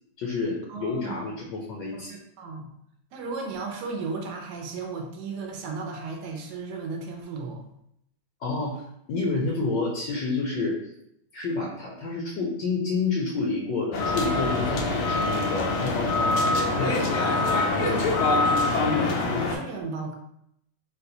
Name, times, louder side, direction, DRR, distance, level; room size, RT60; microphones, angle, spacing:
voice 1, 0.2-2.1 8.4-8.8 9.1-10.8 11.3-17.1 17.7-18.2, left 3 dB, 70° left, -2 dB, 1.1 m, -29 dB
voice 2, 0.7-1.3 1.9-2.0 2.4-2.7 3.1-7.7 16.9-20.1, right 4 dB, 70° right, 2 dB, 1.0 m, -35 dB
sound 1, 13.9-19.6, left 3 dB, 90° left, 1.4 m, -24 dB
3.9 x 2.3 x 2.7 m, 0.75 s
omnidirectional pair, 2.2 m